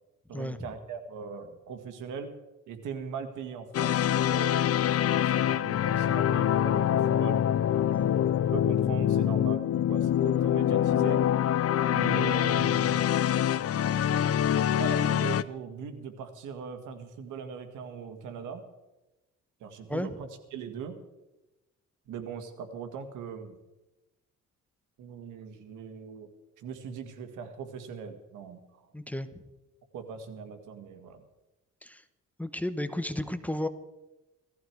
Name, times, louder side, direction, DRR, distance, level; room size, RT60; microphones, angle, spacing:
voice 1, 0.3-2.3 2.7-7.4 8.5-11.2 11.9-13.1 14.7-18.6 19.6-21.0 22.1-23.6 25.0-26.3 26.6-28.9 29.9-31.2, right 6 dB, 85° right, 8 dB, 1.9 m, -40 dB
sound 1, 3.7-15.4, left 10 dB, 50° left, 0.6 m, -25 dB
voice 2, 7.9-8.2 19.9-20.1 28.9-29.3 31.8-32.0 32.4-33.7, left 1 dB, 5° left, 10 dB, 1.1 m, -33 dB
17.0 x 14.5 x 4.7 m, 1.0 s
cardioid pair, 90°, 30 cm